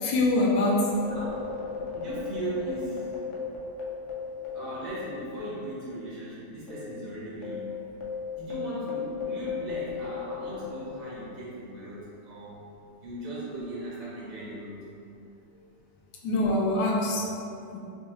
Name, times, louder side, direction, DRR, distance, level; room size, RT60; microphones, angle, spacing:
voice 1, 0.0-1.0 16.2-17.3 17.7-17.8, left 2 dB, 85° left, -2 dB, 1.3 m, -24 dB
sound 1, 0.9-5.7 5.9-6.1 6.7-11.4, left 6 dB, 60° left, 0.7 m, -36 dB
voice 2, 1.9-3.2 4.4-7.7 8.4-12.6 13.0-14.8 15.5-15.6, right 2 dB, 45° right, -8 dB, 0.5 m, -38 dB
5.1 x 2.3 x 2.9 m, 2.6 s
omnidirectional pair, 1.9 m